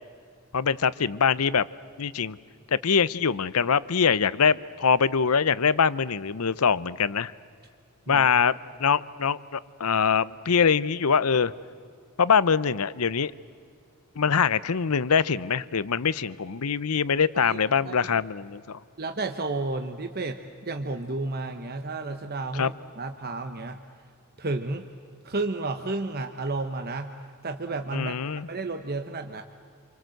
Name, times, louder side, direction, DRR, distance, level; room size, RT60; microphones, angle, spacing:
voice 1, 0.5-1.7 2.0-2.4 2.7-7.3 8.1-11.5 12.2-13.3 14.2-18.8 22.5-22.7 27.9-28.5, left 6 dB, 80° left, 18 dB, 0.7 m, -23 dB
voice 2, 17.8-18.2 19.0-23.8 24.4-24.9 25.2-27.1 27.4-28.2 28.5-29.4, right 3 dB, 45° right, 6 dB, 1.1 m, -32 dB
28.5 x 24.5 x 7.8 m, 2.3 s
head